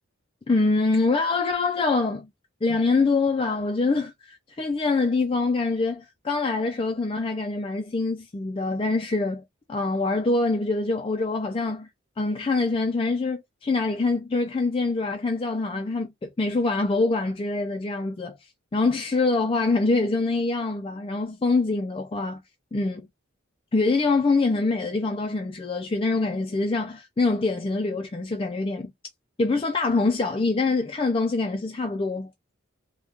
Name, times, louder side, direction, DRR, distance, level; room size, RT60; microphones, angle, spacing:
voice 1, 0.5-2.3 2.6-9.4 9.7-11.9 12.2-22.4 22.7-23.1 23.7-28.9 29.4-32.3, left 3 dB, 25° left, 0.3 m, -25 dB
3.4 x 2.2 x 2.6 m
head